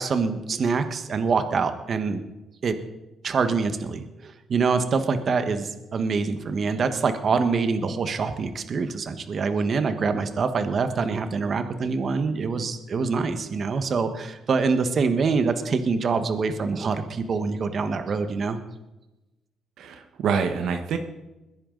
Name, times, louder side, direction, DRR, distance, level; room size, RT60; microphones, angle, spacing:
voice 1, 0.0-2.2 2.6-2.8 3.2-18.6, right 4 dB, 50° right, 9 dB, 1.3 m, -25 dB
voice 2, 19.8-21.0, right 6 dB, 75° right, 7 dB, 1.2 m, -26 dB
21.5 x 10.5 x 3.9 m, 1.0 s
cardioid pair, 90°, 0 cm